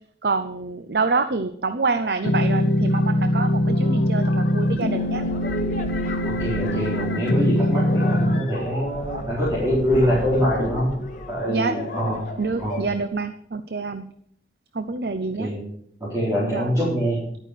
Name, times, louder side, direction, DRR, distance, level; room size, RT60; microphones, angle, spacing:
voice 1, 0.2-5.2 6.7-6.8 11.5-11.8 12.4-14.1 14.7-15.5 16.5-16.8, right 4 dB, 60° right, 10 dB, 0.7 m, -26 dB
sound 1, 2.2-8.4, left 1 dB, 70° left, 0.9 m, -22 dB
sound 2, 3.3-13.0, equal, 45° left, 1.9 m, -35 dB
voice 2, 6.2-10.9 11.3-12.2 12.6-12.8 15.4-15.6 16.0-17.2, equal, 15° right, -7 dB, 4.3 m, -24 dB
12.0 x 9.1 x 6.6 m, 0.68 s
head